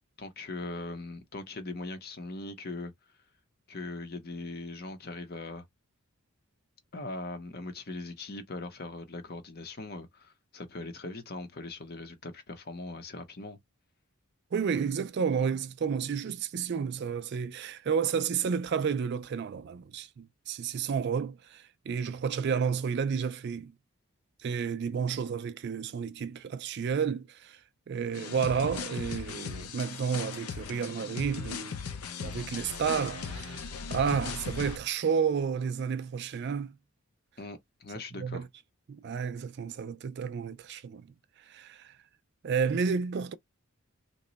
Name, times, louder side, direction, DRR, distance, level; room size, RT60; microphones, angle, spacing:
voice 1, 0.2-2.9 3.7-5.6 6.9-13.6 37.4-38.5, left 2 dB, 45° left, 0.7 m, -40 dB
voice 2, 14.5-23.7 24.4-27.6 27.9-31.8 32.2-36.8 38.2-38.5 38.9-41.1 41.5-41.9 42.4-43.3, right 6 dB, 50° right, 0.3 m, -31 dB
sound 1, 28.1-34.8, left 5 dB, 80° left, 0.5 m, -38 dB
2.9 x 2.2 x 3.9 m
head